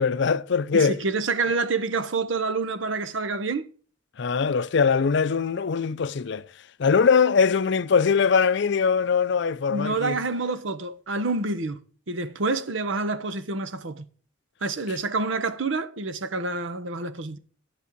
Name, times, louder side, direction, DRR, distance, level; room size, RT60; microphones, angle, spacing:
voice 1, 0.0-1.0 4.2-6.5 6.8-10.2, left 5 dB, 65° left, 0.5 m, -22 dB
voice 2, 0.7-3.7 9.7-11.8 12.1-14.1 14.6-17.4, right 3 dB, 85° right, 1.0 m, -27 dB
11.0 x 5.4 x 5.1 m
head